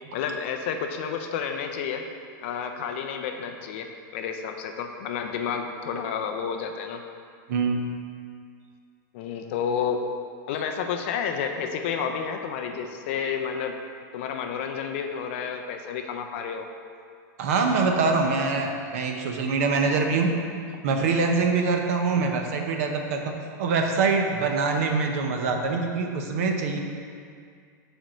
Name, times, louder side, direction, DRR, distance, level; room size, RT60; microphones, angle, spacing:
voice 1, 0.1-2.1 2.4-7.0 9.1-10.0 10.5-13.8 14.1-16.7, left 7 dB, 35° left, 5 dB, 0.4 m, -30 dB
voice 2, 7.5-7.8 17.4-20.3 20.8-26.8, right 4 dB, 45° right, 3 dB, 0.7 m, -24 dB
5.2 x 4.4 x 6.0 m, 2.2 s
supercardioid pair, 180°, 10 cm